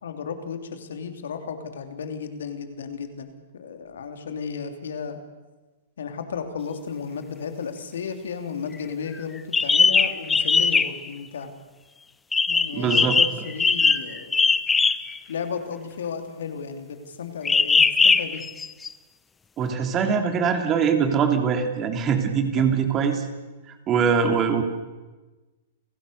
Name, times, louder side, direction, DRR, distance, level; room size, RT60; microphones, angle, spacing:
voice 1, 0.0-5.2 6.0-11.5 12.5-14.5 15.3-18.4 22.6-22.7 24.3-24.5, left 6 dB, 75° left, 6 dB, 3.1 m, -34 dB
sound 1, 9.5-11.0 12.3-15.2 17.5-18.9, left 4 dB, 15° left, 0.7 m, -20 dB
voice 2, 12.7-13.2 19.6-23.3 23.7-24.6, right 6 dB, 30° right, 5 dB, 3.4 m, -22 dB
30.0 x 16.5 x 6.7 m, 1.2 s
hypercardioid pair, 115°, 0 cm